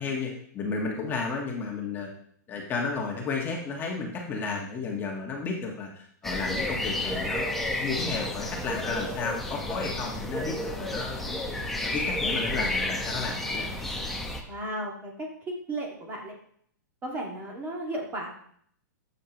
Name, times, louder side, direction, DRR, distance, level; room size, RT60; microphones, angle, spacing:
voice 1, 0.0-2.1 2.5-11.4 11.8-13.7, left 4 dB, 20° left, -1 dB, 1.4 m, -33 dB
sound 1, 6.2-14.4, left 1 dB, ahead, 0.9 m, -31 dB
voice 2, 14.5-16.3 17.0-18.3, right 1 dB, 20° right, 0 dB, 1.9 m, -34 dB
13.5 x 6.7 x 3.0 m, 0.64 s
hypercardioid pair, 145°, 10 cm